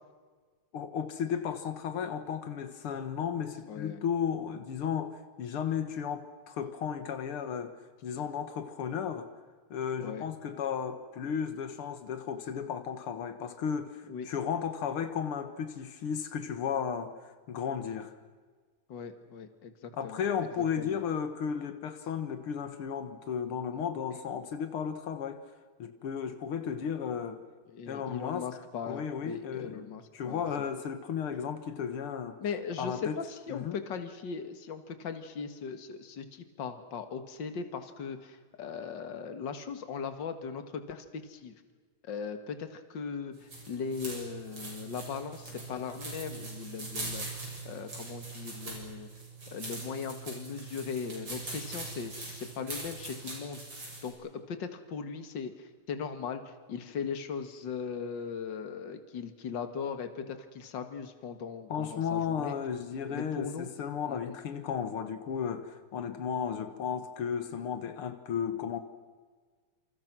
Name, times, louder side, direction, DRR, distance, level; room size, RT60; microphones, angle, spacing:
voice 1, 0.7-7.8 8.0-9.3 9.7-18.1 19.9-25.4 25.8-27.4 27.9-29.9 30.1-32.4 32.8-33.2 33.5-33.8 61.7-68.8, left 7 dB, 85° left, 2.3 m, -34 dB
voice 2, 3.7-4.0 10.0-10.3 14.1-14.3 18.9-20.3 20.8-21.0 27.7-30.4 32.4-41.5 42.0-49.1 49.5-53.6 54.0-62.6 63.1-63.7 64.1-64.4, left 6 dB, 55° left, 2.4 m, -39 dB
sound 1, 43.3-54.1, right 3 dB, 75° right, 7.7 m, -42 dB
28.5 x 27.0 x 6.1 m
omnidirectional pair, 2.4 m